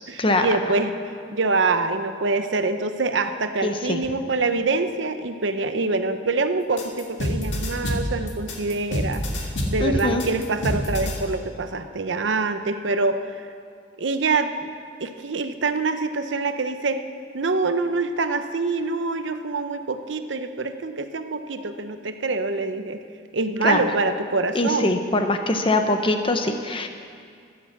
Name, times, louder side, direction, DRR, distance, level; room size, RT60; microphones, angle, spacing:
voice 1, 0.1-0.9 1.3-9.2 9.7-13.4 14.0-14.7 15.0-17.0 17.3-23.0 23.3-25.0, right 3 dB, 85° right, 8 dB, 0.8 m, -25 dB
voice 2, 3.6-4.0 9.8-10.2 23.6-23.9 24.5-26.9, left 2 dB, 30° left, 6 dB, 0.8 m, -22 dB
sound 1, 6.8-11.2, left 1 dB, 75° left, 1.9 m, -27 dB
12.5 x 9.4 x 7.3 m, 2.2 s
head